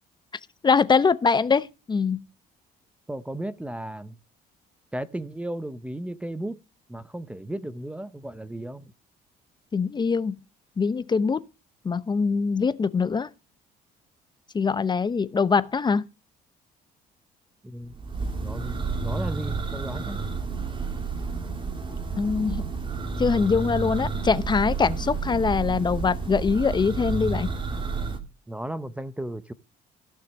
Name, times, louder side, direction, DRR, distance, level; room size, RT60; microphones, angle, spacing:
voice 1, 0.6-2.2 9.7-10.4 10.8-11.4 11.8-13.3 14.5-16.0 22.2-22.6 23.2-27.5, left 5 dB, 25° left, 0.8 m, -23 dB
voice 2, 3.1-4.2 4.9-6.6 6.9-8.9 17.6-17.9 18.4-20.2 28.5-29.5, right 1 dB, 5° right, 0.7 m, -35 dB
Church bell, 17.9-28.2, right 4 dB, 30° right, 2.4 m, -30 dB
15.5 x 6.5 x 6.4 m
cardioid pair, 110°, 17 cm